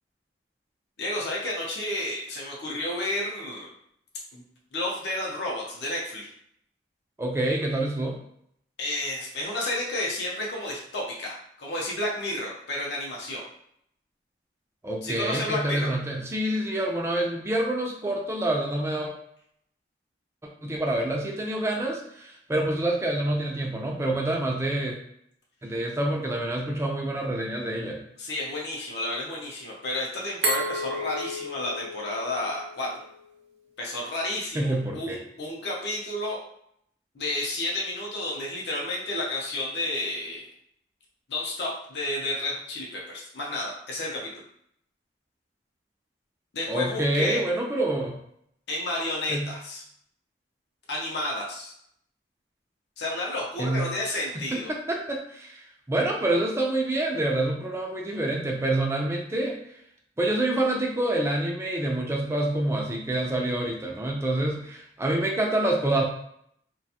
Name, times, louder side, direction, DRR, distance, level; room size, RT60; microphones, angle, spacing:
voice 1, 1.0-3.7 4.3-4.4 4.7-6.3 8.8-13.4 15.0-15.9 28.2-32.9 33.8-36.4 37.1-40.4 41.3-44.4 46.5-47.4 48.7-49.8 50.9-51.7 53.0-54.7, left 1 dB, 65° left, -3 dB, 0.6 m, -31 dB
voice 2, 7.2-8.2 14.8-19.1 20.6-24.9 25.6-28.0 34.5-35.2 46.7-48.2 49.3-49.5 53.6-53.9 54.3-59.6 60.2-66.0, right 1 dB, 15° right, 0 dB, 0.3 m, -27 dB
Glass, 30.4-33.2, right 1 dB, 60° right, 0.6 m, -32 dB
2.4 x 2.3 x 2.7 m, 0.71 s
head